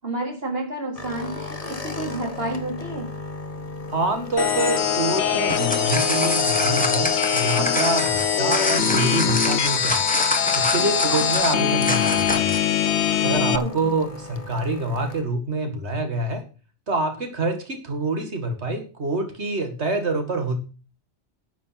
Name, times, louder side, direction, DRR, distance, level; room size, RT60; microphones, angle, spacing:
voice 1, 0.0-3.1 11.0-11.3 13.2-14.0, right 1 dB, 60° right, 1 dB, 4.3 m, -30 dB
sound 1, 0.9-15.2, left 2 dB, 35° left, 1.3 m, -38 dB
voice 2, 3.9-10.0 10.6-12.6 13.2-16.4 16.9-20.6, right 2 dB, 85° right, 6 dB, 2.5 m, -26 dB
sound 2, 4.4-13.6, left 8 dB, 85° left, 1.1 m, -22 dB
sound 3, 5.3-12.7, left 1 dB, 5° left, 1.7 m, -26 dB
11.0 x 7.6 x 5.9 m, 0.35 s
omnidirectional pair, 1.1 m